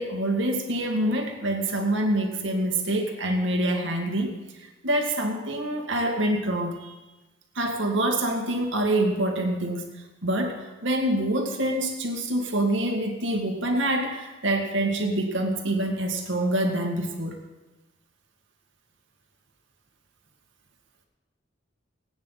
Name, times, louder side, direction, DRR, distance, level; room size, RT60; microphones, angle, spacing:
voice 1, 0.0-7.0 7.6-9.8 10.2-17.4, right 1 dB, 75° right, 2 dB, 2.1 m, -26 dB
20.5 x 9.4 x 4.1 m, 1.1 s
head